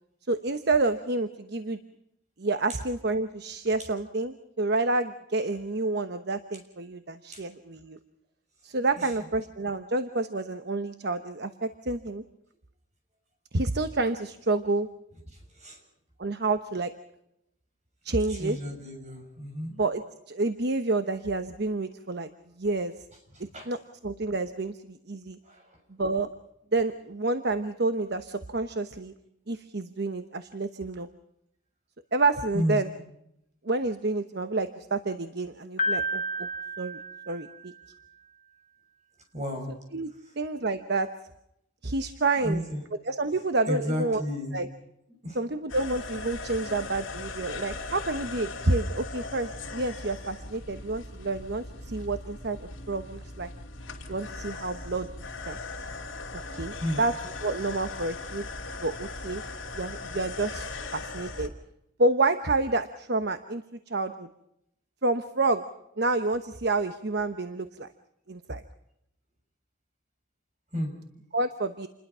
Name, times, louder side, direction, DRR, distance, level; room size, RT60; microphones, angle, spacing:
voice 1, 0.3-1.8 2.4-8.0 8.6-12.2 13.5-14.9 16.2-16.9 18.0-18.6 19.8-22.3 22.6-22.9 23.7-23.8 24.0-25.4 26.0-26.3 26.7-29.1 29.5-31.1 32.1-32.9 33.6-36.5 36.8-37.0 37.3-37.7 39.9-41.1 41.8-42.6 43.1-44.2 44.5-44.7 45.4-53.5 54.1-55.1 55.5-55.6 56.5-57.1 57.4-58.5 58.8-59.4 59.7-61.5 62.0-64.3 65.0-65.6 66.0-67.9 68.3-68.6 71.3-71.9, right 2 dB, 55° right, 9 dB, 1.1 m, -29 dB
voice 2, 15.3-15.8 18.3-19.8 23.3-23.7 25.4-25.8 32.5-32.8 39.3-39.7 40.2-40.3 42.4-42.8 43.7-44.5 45.2-45.4 56.8-57.0 70.7-70.9, equal, 35° right, 3 dB, 6.6 m, -32 dB
Piano, 35.8-37.9, equal, 40° left, 3.1 m, -31 dB
sound 1, 45.7-61.5, left 3 dB, 70° left, 2.8 m, -39 dB
28.5 x 21.0 x 5.6 m, 0.80 s
head